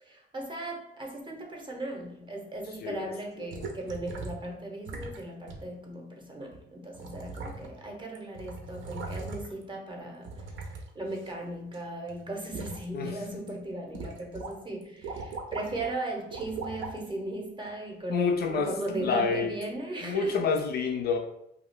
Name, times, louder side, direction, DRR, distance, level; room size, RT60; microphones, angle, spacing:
voice 1, 0.0-20.5, right 2 dB, 25° right, 0.7 m, -37 dB
sound 1, 3.5-4.5 4.8-5.2 5.5-5.6 6.5-6.6 6.9-7.9 8.1-9.6 10.2-11.8 12.1-12.8 13.3-13.5 13.9-14.5 14.8-15.9 16.3-17.0 17.7-17.8, right 3 dB, 75° right, 0.6 m, -39 dB
voice 2, 18.1-18.7 19.0-19.5 20.0-21.2, left 5 dB, 55° left, 0.4 m, -28 dB
2.3 x 2.3 x 3.4 m
cardioid pair, 90°, 20 cm